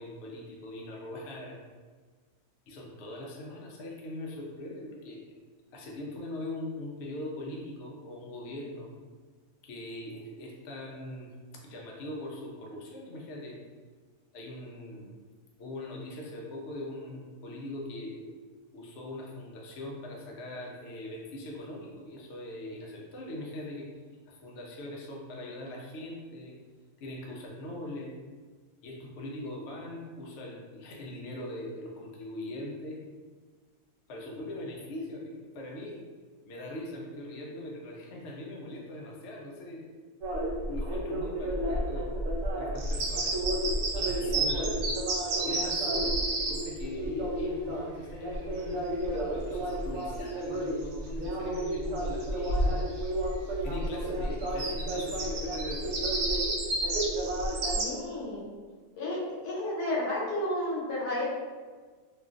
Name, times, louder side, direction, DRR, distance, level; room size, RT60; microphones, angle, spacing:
voice 1, 0.0-1.6 2.7-5.2 5.7-8.9 9.6-11.3 11.6-13.6 14.3-15.1 15.6-18.3 18.7-23.9 24.2-26.6 27.0-28.2 28.8-33.0 34.1-36.0 36.5-39.9 40.5-43.3 43.9-44.7 45.4-52.9 53.6-55.9, left 1 dB, 65° left, -2 dB, 0.7 m, -41 dB
sound 1, 40.2-57.8, equal, 70° right, 0.9 m, -32 dB
sound 2, 42.8-46.7 50.1-50.3 50.8-51.3 51.5-51.7 52.0-53.1 54.4-57.8, right 3 dB, 90° right, 1.3 m, -32 dB
voice 2, 57.7-58.5 59.0-61.2, left 1 dB, 80° left, -6 dB, 1.4 m, -32 dB
3.1 x 2.3 x 2.4 m, 1.5 s
omnidirectional pair, 1.6 m